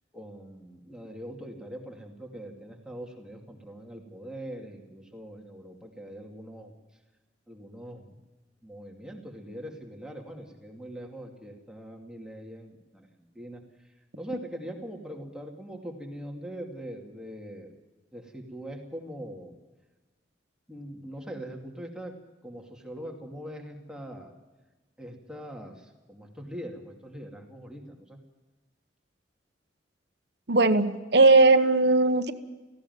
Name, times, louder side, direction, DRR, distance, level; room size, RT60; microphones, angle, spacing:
voice 1, 0.1-6.7 7.5-8.2 8.6-17.7 18.1-19.5 20.7-22.1 22.4-24.3 25.0-28.2, right 1 dB, 5° right, 1 dB, 2.5 m, -42 dB
voice 2, 30.5-32.3, right 3 dB, 60° right, 9 dB, 1.1 m, -19 dB
18.0 x 16.0 x 9.5 m, 1.2 s
head